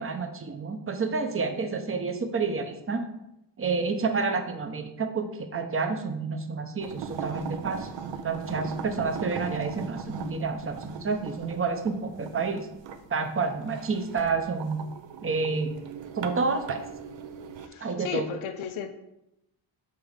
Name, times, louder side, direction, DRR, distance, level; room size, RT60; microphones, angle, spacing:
voice 1, 0.0-3.1 3.6-12.7 13.1-14.8 15.2-15.7 16.2-16.8 17.8-18.3, right 4 dB, 30° right, 7 dB, 0.7 m, -29 dB
sound 1, 6.8-17.7, right 6 dB, 70° right, 0.7 m, -39 dB
voice 2, 17.7-18.9, left 7 dB, 85° left, 7 dB, 0.8 m, -34 dB
7.0 x 3.5 x 4.9 m, 0.86 s
cardioid pair, 100°, 46 cm